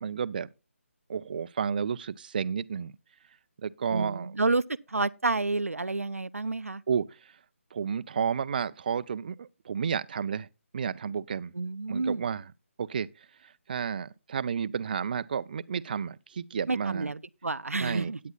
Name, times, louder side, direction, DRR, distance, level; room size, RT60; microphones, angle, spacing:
voice 1, 0.0-0.5 1.1-2.9 3.6-4.3 6.9-7.4 7.7-10.5 10.7-11.5 11.9-12.5 12.8-17.1 17.8-18.1, right 7 dB, 40° right, 0.4 m, -32 dB
voice 2, 3.9-4.6 4.9-6.8 11.6-12.2 16.7-18.2, right 3 dB, 85° right, 0.6 m, -29 dB
16.5 x 9.4 x 2.3 m
figure-of-eight pair, 150°, 7 cm